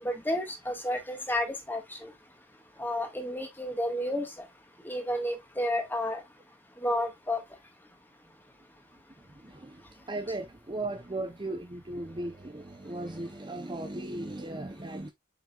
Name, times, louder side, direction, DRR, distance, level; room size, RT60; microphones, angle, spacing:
voice 1, 0.0-2.1 2.8-4.3 4.8-6.2 6.8-7.4, left 1 dB, 10° left, 1.8 m, -31 dB
voice 2, 9.2-15.1, right 2 dB, 25° right, 0.7 m, -37 dB
7.9 x 5.3 x 2.4 m
head